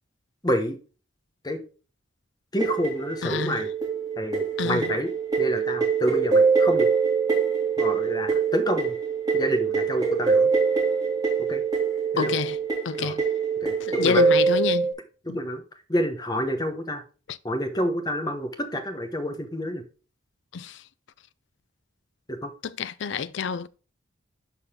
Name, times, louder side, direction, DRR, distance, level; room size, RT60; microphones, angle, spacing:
voice 1, 0.4-0.8 1.4-1.6 2.5-3.7 4.2-5.1 5.4-6.9 7.8-8.9 9.3-10.5 11.5-11.6 12.1-12.3 13.0-13.1 13.6-14.3 15.3-15.6 15.9-17.0 17.4-19.8 22.3-22.5, equal, 20° left, 1.1 m, -28 dB
sound 1, 2.6-14.9, right 5 dB, 20° right, 2.4 m, -24 dB
voice 2, 3.2-3.6 4.6-4.9 12.2-12.6 12.8-13.2 13.8-14.9 15.3-15.4 17.3-17.4 20.5-20.8 22.6-23.7, left 6 dB, 65° left, 0.4 m, -28 dB
11.5 x 4.0 x 3.6 m
head